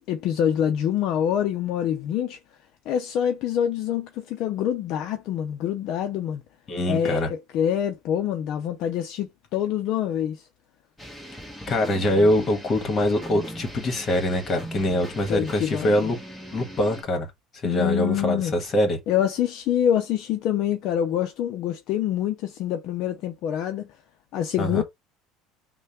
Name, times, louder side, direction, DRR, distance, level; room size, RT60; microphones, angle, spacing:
voice 1, 0.0-2.4 2.9-6.4 6.9-10.5 15.3-16.1 17.6-18.5 19.1-23.9 24.3-24.8, left 10 dB, 55° left, 0.5 m, -26 dB
voice 2, 6.7-7.3 11.7-16.2 16.5-17.3 17.6-19.0 24.6-24.8, left 1 dB, 35° left, 1.5 m, -23 dB
sound 1, 11.0-17.0, equal, 5° left, 1.4 m, -39 dB
3.3 x 2.2 x 4.3 m
supercardioid pair, 125°, 0 cm